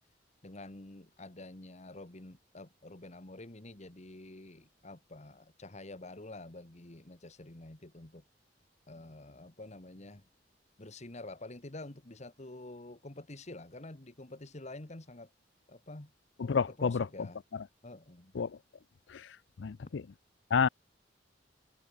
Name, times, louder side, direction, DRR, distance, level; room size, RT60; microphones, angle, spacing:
voice 1, 0.4-8.2 8.9-10.2 10.8-15.3 15.7-16.1 16.8-17.4 17.8-18.3, left 2 dB, 40° left, 1.6 m, -48 dB
voice 2, 16.4-17.0 17.5-17.6 18.3-18.6 19.1-19.3 19.6-20.0 20.5-20.7, left 6 dB, 70° left, 0.5 m, -30 dB
head